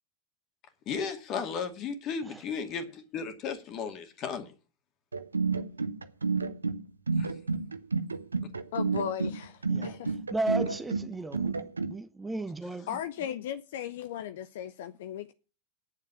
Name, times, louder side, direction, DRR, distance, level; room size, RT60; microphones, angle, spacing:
voice 1, 0.9-4.5 7.2-7.3, left 6 dB, 40° left, 2.3 m, -35 dB
sound 1, 5.1-11.9, right 4 dB, 85° right, 0.7 m, -30 dB
voice 2, 8.7-10.2 12.9-15.3, left 9 dB, 65° left, 0.6 m, -36 dB
voice 3, 10.3-12.9, right 2 dB, 10° right, 0.7 m, -34 dB
8.7 x 7.3 x 8.6 m
figure-of-eight pair, 85°, 0 cm